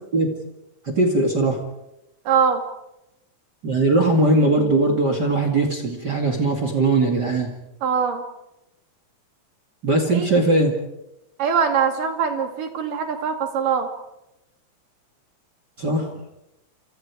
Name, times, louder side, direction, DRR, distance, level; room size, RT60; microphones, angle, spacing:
voice 1, 0.8-1.6 3.6-7.5 9.8-10.7 15.8-16.1, right 2 dB, 35° right, 4 dB, 2.5 m, -20 dB
voice 2, 2.3-2.6 7.8-8.2 10.1-10.3 11.4-13.9, right 6 dB, 70° right, 5 dB, 4.0 m, -22 dB
29.0 x 27.0 x 4.8 m, 0.91 s
omnidirectional pair, 3.9 m